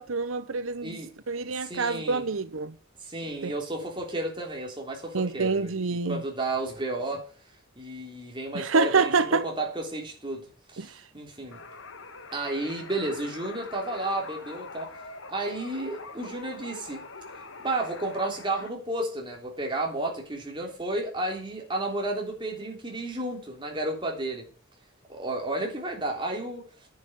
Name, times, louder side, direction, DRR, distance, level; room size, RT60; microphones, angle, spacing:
voice 1, 0.0-1.0 1.3-2.7 3.4-3.5 5.1-6.2 8.5-9.5 10.8-10.9, right 4 dB, 85° right, 0.8 m, -26 dB
voice 2, 0.8-1.1 1.5-2.2 3.0-7.3 7.8-11.6 12.3-14.9 15.3-17.1 17.6-24.5 25.1-26.7, right 2 dB, 25° right, 3.5 m, -32 dB
sound 1, 11.5-18.7, left 3 dB, 70° left, 1.5 m, -43 dB
10.5 x 7.6 x 7.6 m
head